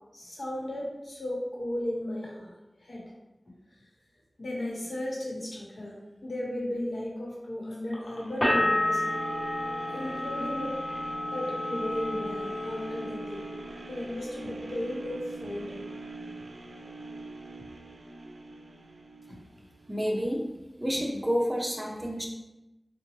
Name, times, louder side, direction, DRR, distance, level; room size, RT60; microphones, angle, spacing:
voice 1, 0.1-2.5 2.8-3.1 4.4-9.0 9.9-10.7 11.3-13.4 13.9-15.8 19.3-19.4, left 1 dB, 65° left, -4 dB, 1.0 m, -35 dB
sound 1, 8.0-20.1 20.6-20.7, right 2 dB, 80° right, 0.4 m, -43 dB
sound 2, 8.4-14.0 14.3-15.1, left 1 dB, 40° left, 1.2 m, -31 dB
voice 2, 19.9-20.4 20.8-22.3, equal, 15° right, -1 dB, 0.7 m, -29 dB
4.0 x 2.2 x 3.1 m, 0.98 s
wide cardioid pair, 75°, 0 cm